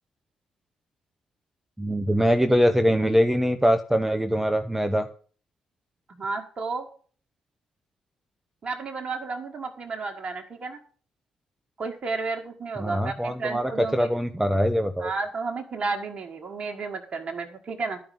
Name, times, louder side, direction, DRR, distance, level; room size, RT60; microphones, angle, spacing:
voice 1, 1.8-5.1 12.8-15.1, equal, 10° right, 7 dB, 0.9 m, -23 dB
voice 2, 6.1-6.9 8.6-10.8 11.8-14.1 15.0-18.0, right 4 dB, 45° right, 2 dB, 1.5 m, -32 dB
11.5 x 5.2 x 7.5 m, 0.43 s
hypercardioid pair, 45°, 3 cm